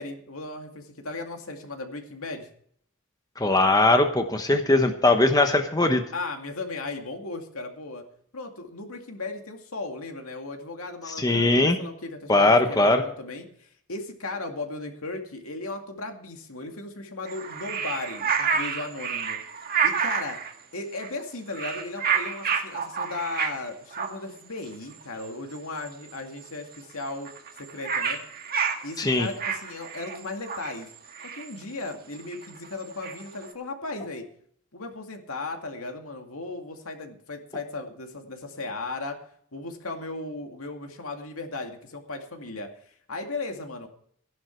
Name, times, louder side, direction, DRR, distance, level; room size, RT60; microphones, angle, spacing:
voice 1, 0.0-2.5 4.5-4.6 6.1-8.0 8.3-19.4 19.8-20.4 20.7-27.3 27.6-28.2 28.8-30.9 31.3-34.3 34.7-39.2 39.5-42.7 43.1-43.9, left 2 dB, 75° left, 4 dB, 2.3 m, -36 dB
voice 2, 3.4-6.0 11.1-11.8 12.3-13.0 29.0-29.3, left 2 dB, 15° left, 6 dB, 1.0 m, -20 dB
sound 1, 17.3-20.5 21.0-21.2 21.5-23.6 23.9-24.1 24.7-24.8 25.0-25.3 25.6-25.9 26.1-26.2 26.4-26.5 26.7-33.5, right 6 dB, 45° right, 1.9 m, -29 dB
15.0 x 11.0 x 4.5 m, 0.63 s
head